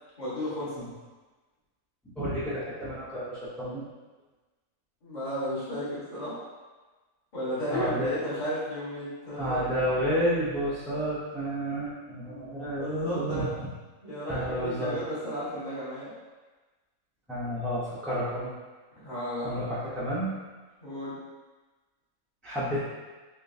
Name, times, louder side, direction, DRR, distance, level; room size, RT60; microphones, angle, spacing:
voice 1, 0.2-0.8 5.0-6.4 7.3-10.1 11.6-11.7 12.3-13.5 14.0-16.1 19.0-19.6 20.8-21.2, equal, 35° left, -10 dB, 1.3 m, -34 dB
voice 2, 2.2-3.9 7.7-8.1 9.4-13.5 14.3-15.0 17.3-18.5 19.4-20.3 22.4-22.8, equal, ahead, -11 dB, 0.4 m, -30 dB
3.6 x 3.3 x 2.6 m, 1.3 s
omnidirectional pair, 1.4 m